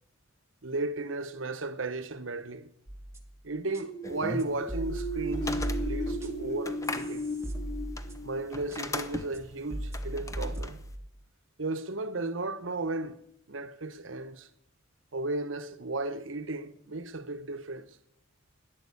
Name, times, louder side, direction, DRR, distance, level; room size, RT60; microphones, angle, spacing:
voice 1, 0.6-2.7 3.4-7.3 8.2-10.8 11.6-13.2 13.5-14.5 15.1-18.0, right 2 dB, 70° right, 1.0 m, -35 dB
sound 1, 2.9-3.3 3.7-3.8 4.4-6.6 6.8-8.4 8.7-8.8 9.3-9.4 9.7-11.1, right 1 dB, 15° right, 1.4 m, -37 dB
sound 2, 3.7-9.3, equal, 35° left, 2.1 m, -37 dB
sound 3, 4.0-10.9, left 2 dB, 15° left, 0.9 m, -40 dB
15.5 x 10.5 x 8.4 m
head